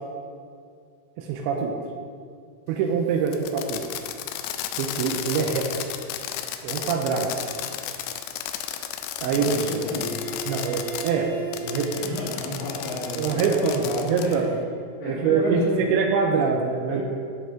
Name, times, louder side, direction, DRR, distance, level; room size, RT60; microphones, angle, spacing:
voice 1, 1.2-1.7 2.7-3.8 4.8-5.7 6.6-7.3 9.2-9.7 10.5-11.3 11.6-11.9 13.2-14.5 15.0-17.0, right 5 dB, 85° right, 1 dB, 2.9 m, -24 dB
Fireworks, 3.3-11.1 11.5-14.4, left 10 dB, 90° left, 2.9 m, -33 dB
voice 2, 9.3-10.2 12.0-14.4 15.0-15.8 16.9-17.0, left 1 dB, 70° left, -4 dB, 3.1 m, -31 dB
Bowed string instrument, 9.9-14.9, right 3 dB, 55° right, 2.0 m, -38 dB
10.5 x 5.5 x 3.7 m, 2.2 s
omnidirectional pair, 5.1 m